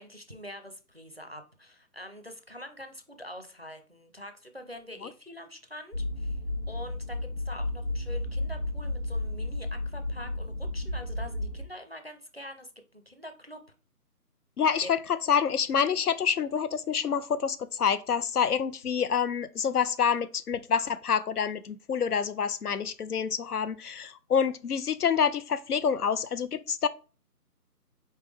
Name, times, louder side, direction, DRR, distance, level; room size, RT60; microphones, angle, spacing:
voice 1, 0.0-6.4 6.7-13.6 14.8-14.9, equal, 40° right, 0.5 m, -45 dB
sound 1, 5.9-11.6, left 2 dB, 40° left, 0.8 m, -33 dB
voice 2, 14.6-15.0 15.3-26.9, left 7 dB, 70° left, 0.6 m, -27 dB
4.3 x 3.4 x 3.3 m
figure-of-eight pair, 175°, 47 cm